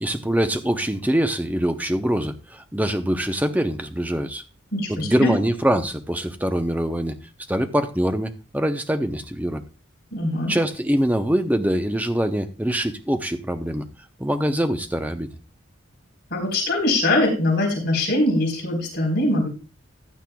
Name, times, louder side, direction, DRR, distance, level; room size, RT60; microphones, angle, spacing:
voice 1, 0.0-4.4 4.9-7.2 7.5-9.6 10.5-13.9 14.2-15.3, right 1 dB, 10° right, 7 dB, 0.6 m, -23 dB
voice 2, 4.7-5.3 10.1-10.5 16.3-19.5, left 1 dB, 50° left, -1 dB, 4.0 m, -22 dB
15.0 x 10.0 x 2.3 m, 0.32 s
head